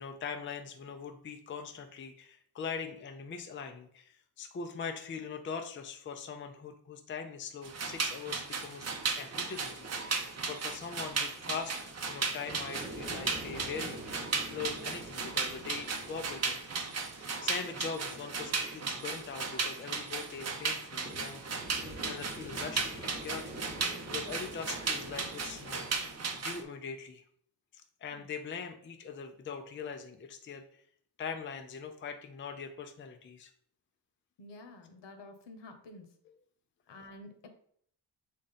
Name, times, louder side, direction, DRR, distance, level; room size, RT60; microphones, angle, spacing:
voice 1, 0.0-8.9 9.2-11.7 12.0-16.6 17.2-21.4 22.1-23.5 24.1-25.9 26.3-27.2 27.7-30.6 31.2-33.5, left 6 dB, 30° left, 5 dB, 0.5 m, -42 dB
sound 1, 7.6-26.6, right 4 dB, 35° right, 0.7 m, -36 dB
sound 2, 8.8-26.2, right 1 dB, 20° right, 1.0 m, -47 dB
voice 2, 34.4-36.1 36.9-37.5, left 2 dB, 75° left, 6 dB, 1.2 m, -50 dB
7.3 x 3.8 x 4.1 m, 0.62 s
wide cardioid pair, 180°, 43 cm